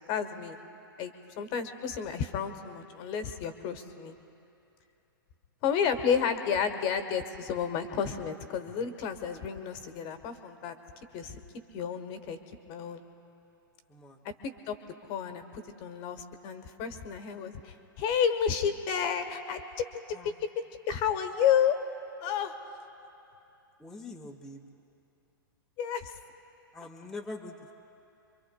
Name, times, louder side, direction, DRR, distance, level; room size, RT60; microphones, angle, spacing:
voice 1, 0.1-0.6 1.0-4.1 5.6-10.7 11.1-11.4 11.7-12.4 12.7-13.0 14.4-14.8 15.1-21.8 22.2-22.6 25.8-26.1, left 7 dB, 40° left, 8 dB, 1.1 m, -31 dB
voice 2, 13.9-14.2 20.1-20.3 23.8-24.6 26.7-27.7, left 2 dB, 5° left, 0 dB, 0.8 m, -43 dB
27.0 x 24.0 x 2.2 m, 2.8 s
figure-of-eight pair, 105°, 12 cm